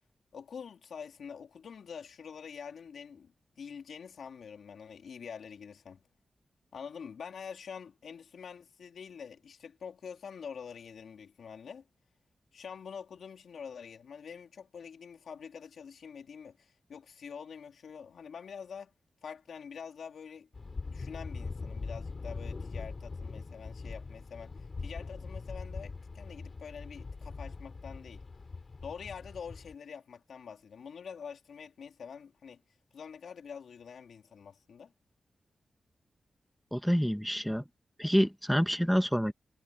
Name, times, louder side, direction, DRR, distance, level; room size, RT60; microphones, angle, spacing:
voice 1, 0.3-3.3 3.6-6.0 6.7-11.9 12.5-18.9 19.2-20.5 20.8-28.2 28.8-32.6 32.9-34.9, left 6 dB, 85° left, 2.9 m, -46 dB
sound 1, 20.5-29.8, left 4 dB, 45° left, 4.9 m, -42 dB
voice 2, 36.7-37.6 38.0-39.3, equal, ahead, 1.5 m, -27 dB
cardioid pair, 70°, 0 cm